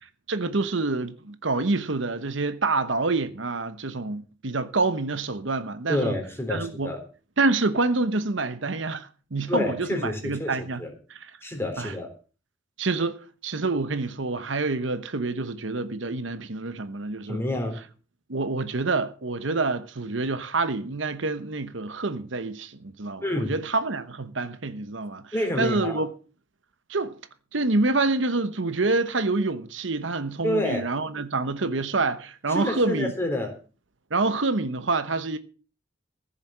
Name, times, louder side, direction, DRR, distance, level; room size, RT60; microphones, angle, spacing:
voice 1, 0.3-6.1 6.5-6.9 7.4-10.8 11.1-11.2 11.8-11.9 12.8-17.4 18.3-26.1 26.9-27.2 27.5-33.1 34.1-35.4, right 3 dB, 70° right, 1.1 m, -27 dB
voice 2, 5.9-7.0 9.5-10.9 11.4-12.1 17.2-17.8 23.2-23.6 25.3-26.0 30.4-30.9 32.5-33.5, left 1 dB, 10° left, 3.7 m, -28 dB
15.0 x 7.1 x 7.4 m
head